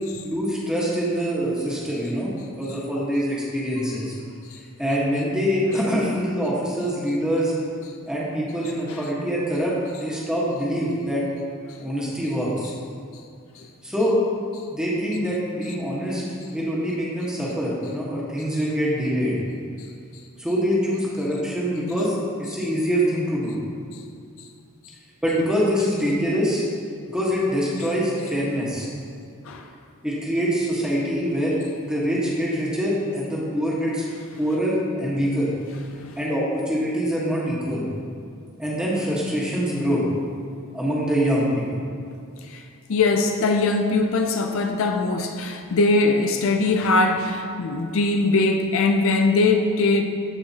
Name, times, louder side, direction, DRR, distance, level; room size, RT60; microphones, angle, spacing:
voice 1, 0.2-2.3 2.6-4.1 4.8-7.5 8.1-9.7 10.0-11.2 11.8-12.7 13.8-14.2 14.7-16.2 16.5-19.4 20.4-22.1 22.4-23.6 25.2-26.6 27.1-28.9 30.0-34.0 34.4-35.5 36.1-37.9 38.6-40.0 40.7-41.8, equal, 5° right, -6 dB, 1.3 m, -24 dB
voice 2, 42.9-50.0, left 3 dB, 65° left, 5 dB, 0.5 m, -21 dB
13.5 x 4.6 x 2.8 m, 2.3 s
head